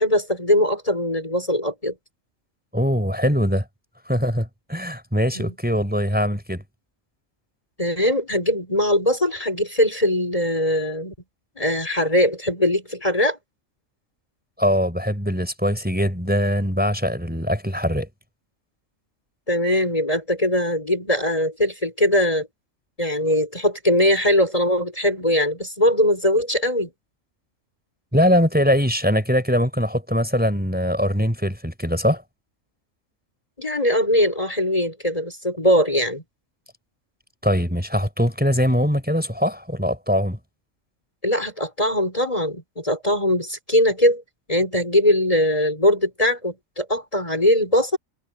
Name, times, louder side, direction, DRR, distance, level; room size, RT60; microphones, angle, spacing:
voice 1, 0.0-1.9 5.3-5.5 7.8-11.1 11.6-13.4 19.5-22.5 23.0-26.9 33.6-36.2 41.2-44.2 44.5-48.0, left 1 dB, 25° left, 5.0 m, -21 dB
voice 2, 2.7-3.6 4.1-6.6 14.6-18.1 28.1-32.2 37.4-40.4, equal, 5° right, 5.0 m, -22 dB
omnidirectional pair, 1.3 m